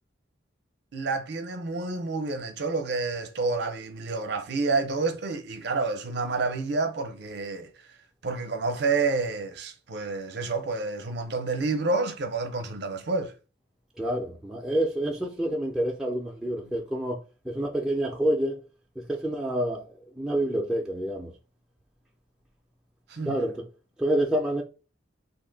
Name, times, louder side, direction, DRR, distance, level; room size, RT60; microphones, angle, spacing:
voice 1, 0.9-7.7 8.2-13.3 23.1-23.4, right 3 dB, 55° right, 0.6 m, -29 dB
voice 2, 14.0-17.2 17.4-18.6 19.0-21.3 23.2-23.6 24.0-24.6, right 1 dB, 5° right, 0.4 m, -28 dB
2.8 x 2.6 x 3.8 m
head